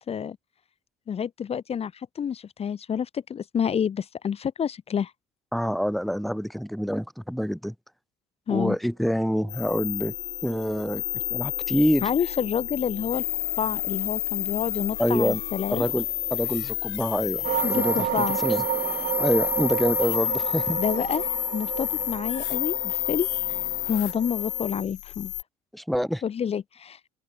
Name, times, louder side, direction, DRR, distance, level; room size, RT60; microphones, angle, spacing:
voice 1, 1.1-5.1 8.5-8.8 12.0-13.3 13.6-15.9 17.6-18.4 20.8-21.2 21.5-25.3 26.2-27.0, left 8 dB, 35° left, 0.8 m, -28 dB
voice 2, 5.5-7.7 8.5-10.1 10.4-11.0 11.3-12.1 15.0-15.4 15.7-17.4 17.7-18.6 19.2-20.8 25.7-26.2, equal, ahead, 1.3 m, -26 dB
sound 1, 8.9-23.2, right 30 dB, 85° right, 3.3 m, -48 dB
sound 2, 9.5-25.4, left 21 dB, 75° left, 0.6 m, -30 dB
sound 3, 17.4-24.8, right 11 dB, 55° right, 2.8 m, -31 dB
open air
supercardioid pair, 100°, 18 cm